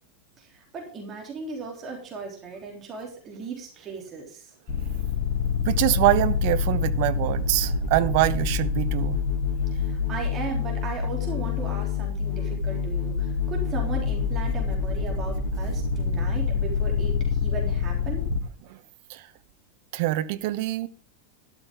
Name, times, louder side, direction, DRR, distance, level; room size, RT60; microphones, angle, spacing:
voice 1, 0.4-4.5 9.7-18.2, right 5 dB, 25° right, 3.6 m, -37 dB
sound 1, 4.7-18.4, left 5 dB, 40° left, 3.0 m, -26 dB
voice 2, 5.6-9.2 18.7-18.8 19.1-19.3 19.9-20.9, right 17 dB, 50° right, 0.8 m, -24 dB
12.5 x 12.0 x 3.8 m
figure-of-eight pair, 90°, 0 cm